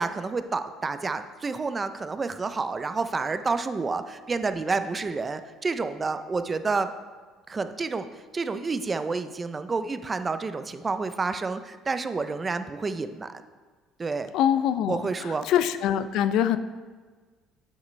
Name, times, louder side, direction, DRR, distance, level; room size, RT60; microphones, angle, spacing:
voice 1, 0.0-6.9 7.5-13.3 14.0-14.3 14.9-15.5, right 4 dB, 20° right, 10 dB, 0.4 m, -29 dB
voice 2, 14.3-15.0 15.4-16.6, left 10 dB, 70° left, 12 dB, 0.4 m, -23 dB
9.3 x 7.5 x 3.2 m, 1.4 s
cardioid pair, 125°, 0 cm